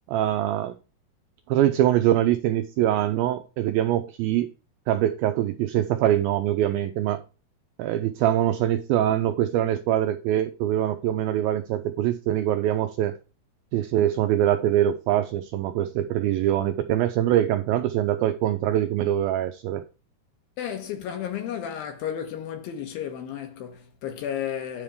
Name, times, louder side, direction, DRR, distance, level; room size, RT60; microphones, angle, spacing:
voice 1, 0.1-0.7 1.5-4.5 4.9-7.2 7.8-13.2 13.7-19.8, right 12 dB, 85° right, 2.1 m, -23 dB
voice 2, 20.6-24.8, left 9 dB, 70° left, 2.7 m, -33 dB
10.0 x 3.5 x 6.4 m
omnidirectional pair, 4.8 m